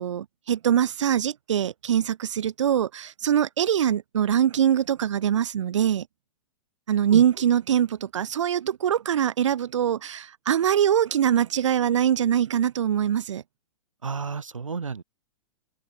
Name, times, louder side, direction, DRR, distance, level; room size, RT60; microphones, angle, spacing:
voice 1, 0.0-6.1 6.9-13.4, right 9 dB, 70° right, 2.0 m, -23 dB
voice 2, 14.0-15.0, right 5 dB, 90° right, 3.6 m, -31 dB
hypercardioid pair, 115°, 16 cm